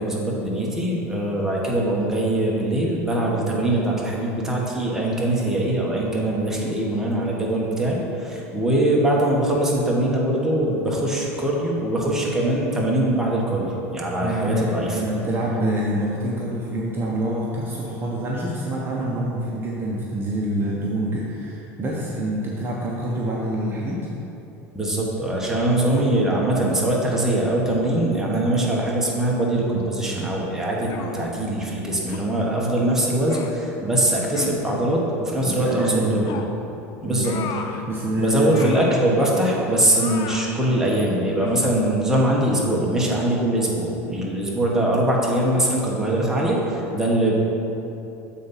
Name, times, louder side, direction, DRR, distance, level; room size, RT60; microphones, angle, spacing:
voice 1, 0.0-13.6 13.9-15.0 24.7-36.3 37.0-37.3 38.2-47.4, right 1 dB, 5° right, -4 dB, 1.5 m, -22 dB
voice 2, 14.2-24.1 35.4-36.2 36.7-36.8 37.0-37.6 37.9-39.0 41.5-41.6, right 1 dB, 30° right, -4 dB, 0.9 m, -26 dB
sound 1, 30.9-31.3 32.1-32.3 33.3-33.6 34.3-34.6 36.2-36.6 37.2-37.8 38.5-39.0 39.9-40.5 41.4-41.7, left 6 dB, 55° left, 0.6 m, -34 dB
7.6 x 4.1 x 5.6 m, 3.0 s
supercardioid pair, 105°, 8 cm